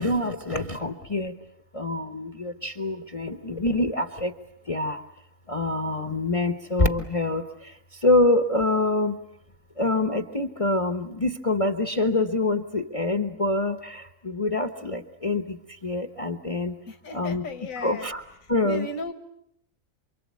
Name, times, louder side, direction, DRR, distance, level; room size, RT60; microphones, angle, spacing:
voice 1, 0.0-1.3 1.7-4.3 4.7-5.0 5.5-7.4 8.0-9.2 9.8-15.6 15.8-16.7 17.1-17.5 17.8-18.2 18.5-18.9, left 2 dB, 25° left, 7 dB, 1.1 m, -25 dB
voice 2, 16.9-18.1 18.6-19.1, left 2 dB, 75° left, 7 dB, 2.0 m, -35 dB
28.0 x 24.0 x 8.4 m, 0.75 s
omnidirectional pair, 1.4 m